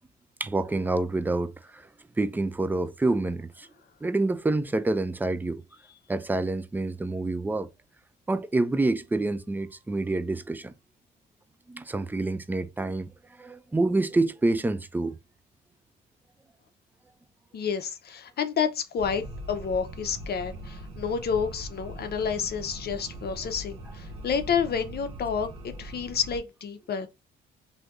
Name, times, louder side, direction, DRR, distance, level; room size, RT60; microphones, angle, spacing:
voice 1, 0.4-1.9 2.2-3.7 4.0-5.6 6.1-7.7 8.3-10.7 11.7-13.1 13.4-15.2, right 2 dB, 10° right, 0.3 m, -27 dB
voice 2, 17.5-19.2 19.5-27.1, left 6 dB, 55° left, 0.6 m, -29 dB
sound 1, 19.0-26.4, right 1 dB, 90° right, 0.6 m, -41 dB
3.3 x 2.7 x 2.4 m
cardioid pair, 90°, 20 cm